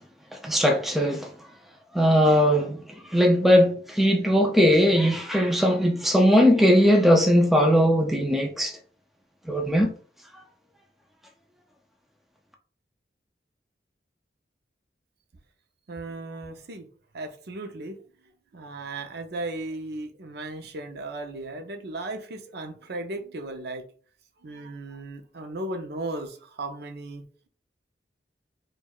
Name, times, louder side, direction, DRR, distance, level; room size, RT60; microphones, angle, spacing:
voice 1, 0.4-1.3 1.9-2.8 3.1-8.7 9.5-9.9, equal, ahead, 0.3 m, -19 dB
voice 2, 15.9-16.9 17.1-18.0 18.5-23.8 24.4-27.2, right 2 dB, 65° right, 0.5 m, -36 dB
4.4 x 2.2 x 2.3 m
head